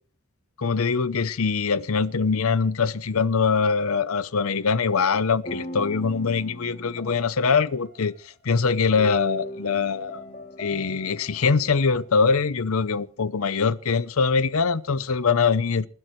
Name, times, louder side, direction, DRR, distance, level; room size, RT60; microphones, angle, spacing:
voice 1, 0.6-8.1 8.4-10.2 10.6-15.9, left 5 dB, 70° left, 0.7 m, -23 dB
sound 1, 4.3-4.8 5.4-8.2 8.9-12.1, equal, 40° left, 2.8 m, -39 dB
29.0 x 12.5 x 3.2 m
head